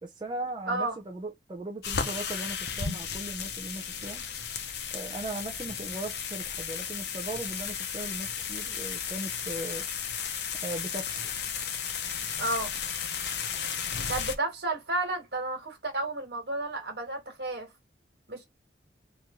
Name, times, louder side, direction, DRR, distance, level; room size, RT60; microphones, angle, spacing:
voice 1, 0.0-4.2 4.9-9.9 10.6-11.2, right 2 dB, 25° right, 0.5 m, -38 dB
voice 2, 0.7-1.0 12.4-12.7 14.1-17.7 18.3-18.4, right 2 dB, 65° right, 1.5 m, -32 dB
sound 1, 1.8-14.3, left 7 dB, 65° left, 0.7 m, -34 dB
3.0 x 2.6 x 3.6 m
head